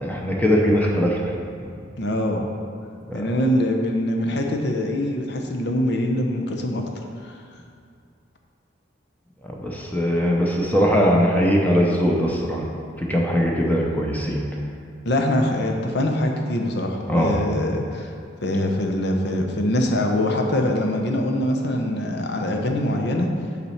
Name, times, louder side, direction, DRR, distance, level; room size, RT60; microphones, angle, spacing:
voice 1, 0.0-1.3 3.1-3.3 9.6-12.6 13.0-14.4 17.1-17.4, equal, 10° left, -2 dB, 0.8 m, -20 dB
voice 2, 2.0-2.5 3.1-6.9 7.2-7.3 15.0-18.1 18.4-23.3, left 1 dB, 60° left, 2 dB, 0.8 m, -23 dB
7.3 x 4.2 x 5.8 m, 2.3 s
head